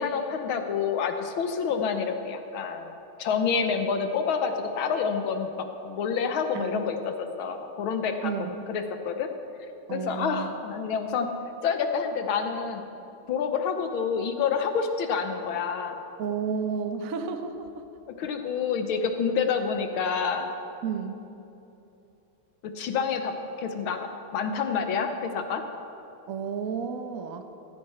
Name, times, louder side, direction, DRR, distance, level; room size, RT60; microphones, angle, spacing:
voice 1, 0.0-2.9 3.2-8.3 8.7-9.3 9.9-11.3 11.6-12.9 13.3-16.0 18.2-20.5 22.6-23.3 23.6-24.0 24.3-25.6, left 6 dB, 70° left, 6 dB, 1.6 m, -28 dB
voice 2, 8.2-8.6 9.9-10.5 16.2-17.8 20.8-21.2 26.3-27.5, right 6 dB, 55° right, 7 dB, 0.9 m, -32 dB
15.5 x 13.5 x 4.3 m, 2.9 s
omnidirectional pair, 2.4 m